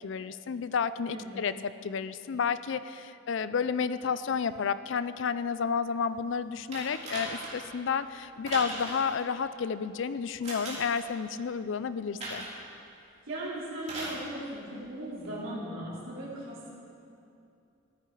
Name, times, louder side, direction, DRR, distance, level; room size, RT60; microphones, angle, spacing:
voice 1, 0.0-1.5 1.8-12.5, left 6 dB, 65° left, 14 dB, 0.4 m, -31 dB
voice 2, 1.1-1.4 13.3-16.7, right 1 dB, 75° right, -9 dB, 3.3 m, -38 dB
sound 1, 6.7-7.7 8.5-9.1 10.4-11.0 12.2-12.6 13.8-14.2 15.2-15.3, right 2 dB, 35° right, 2.8 m, -38 dB
14.0 x 9.9 x 4.7 m, 2.6 s
head